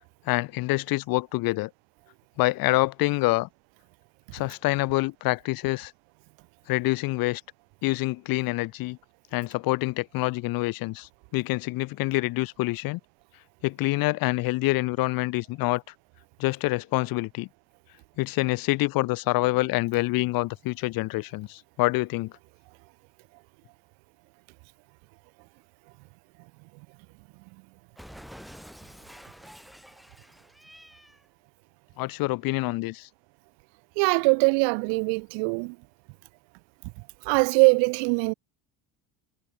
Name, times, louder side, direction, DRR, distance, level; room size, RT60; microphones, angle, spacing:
voice 1, 0.3-1.7 2.4-3.5 4.3-5.9 6.7-7.4 7.8-9.0 9.3-13.0 13.6-15.8 16.4-17.5 18.2-22.3 32.0-33.1, left 21 dB, 50° left, 1.0 m, -26 dB
Cat, 28.0-31.3, equal, ahead, 1.4 m, -48 dB
voice 2, 34.0-35.8 37.2-38.3, right 37 dB, 80° right, 0.9 m, -22 dB
cardioid pair, 170°, 43 cm